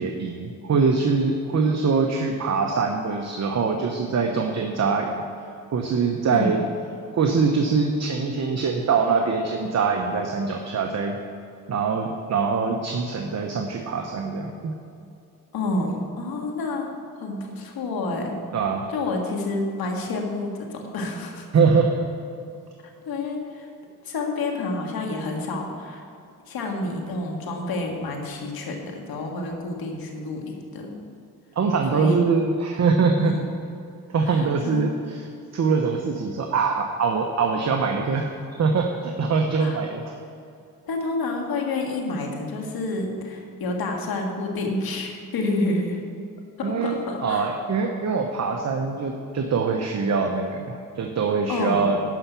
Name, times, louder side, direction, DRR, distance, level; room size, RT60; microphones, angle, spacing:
voice 1, 0.0-5.2 5.7-6.6 7.1-11.2 11.7-14.8 18.5-18.9 21.5-21.9 31.6-33.3 34.1-35.2 35.5-38.3 38.6-40.0 46.6-52.0, right 5 dB, 45° right, 3 dB, 1.0 m, -23 dB
voice 2, 15.5-16.9 17.1-18.4 18.9-21.5 23.1-23.7 24.0-26.0 26.5-31.0 31.9-32.3 33.2-33.5 34.2-34.9 39.6-39.8 40.9-46.0 46.6-47.5 51.5-51.9, left 2 dB, 80° left, 1 dB, 1.9 m, -29 dB
12.0 x 5.7 x 6.9 m, 2.6 s
cardioid pair, 90°, 36 cm